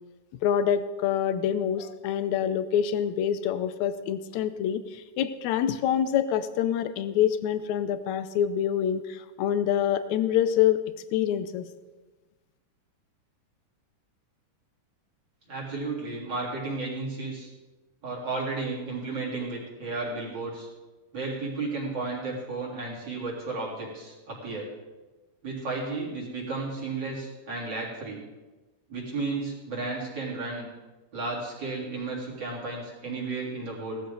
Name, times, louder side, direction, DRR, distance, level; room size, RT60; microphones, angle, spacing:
voice 1, 0.4-10.8 11.1-11.7, left 9 dB, 75° left, 12 dB, 1.8 m, -26 dB
voice 2, 15.5-17.5 18.0-20.7 21.1-24.7 25.4-28.2 28.9-30.7 31.1-34.0, right 3 dB, 30° right, -4 dB, 4.0 m, -33 dB
17.5 x 13.0 x 4.0 m, 1.2 s
omnidirectional pair, 3.9 m